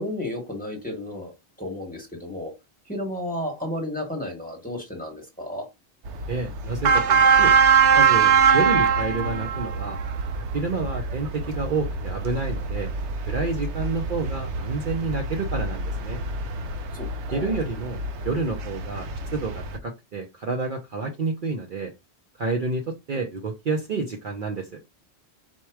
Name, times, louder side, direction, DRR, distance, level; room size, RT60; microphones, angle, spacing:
voice 1, 0.0-1.3 1.6-2.5 2.9-5.7 17.0-17.6, left 1 dB, 10° left, 1.2 m, -32 dB
sound 1, 6.0-19.8, right 6 dB, 80° right, 0.9 m, -23 dB
voice 2, 6.3-7.5 7.9-10.0 10.5-12.9 13.3-16.2 17.3-18.0 18.2-21.9 22.4-24.8, right 3 dB, 55° right, 0.8 m, -29 dB
4.4 x 2.2 x 4.6 m
omnidirectional pair, 1.2 m